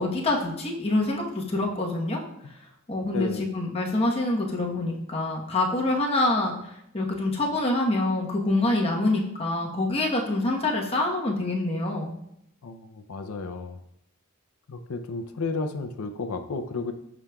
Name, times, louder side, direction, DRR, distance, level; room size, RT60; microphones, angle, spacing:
voice 1, 0.0-2.2 2.9-12.1, left 2 dB, 30° left, -1 dB, 1.0 m, -26 dB
voice 2, 3.1-3.6 12.6-13.8 14.7-16.9, left 3 dB, 85° left, 8 dB, 0.5 m, -32 dB
13.0 x 5.0 x 2.3 m, 0.78 s
head